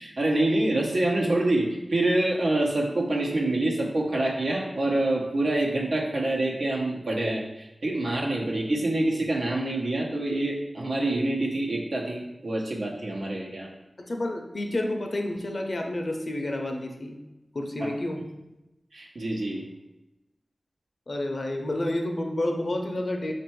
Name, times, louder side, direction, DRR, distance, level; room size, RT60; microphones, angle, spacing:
voice 1, 0.0-13.7 17.8-17.9 18.9-19.7, right 1 dB, 80° right, -2 dB, 0.9 m, -26 dB
voice 2, 14.0-17.2 17.5-18.3 21.1-23.3, left 1 dB, 55° left, 2 dB, 0.6 m, -30 dB
4.3 x 2.6 x 4.5 m, 0.98 s
wide cardioid pair, 60°, 0 cm